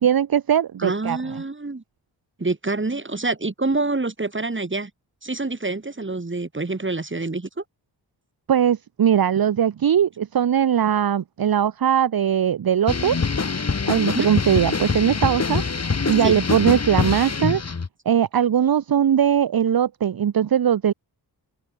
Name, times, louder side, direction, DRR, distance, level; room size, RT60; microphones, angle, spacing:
voice 1, 0.0-1.2 8.5-13.2 13.9-15.6 16.1-17.6 18.0-20.9, right 9 dB, 55° right, 1.2 m, -20 dB
voice 2, 0.8-1.8 2.4-4.9 5.2-7.5 14.0-14.3 16.2-16.3, right 3 dB, 25° right, 7.4 m, -26 dB
sound 1, 12.9-17.9, left 4 dB, 35° left, 2.6 m, -24 dB
open air
cardioid pair, 60°, 43 cm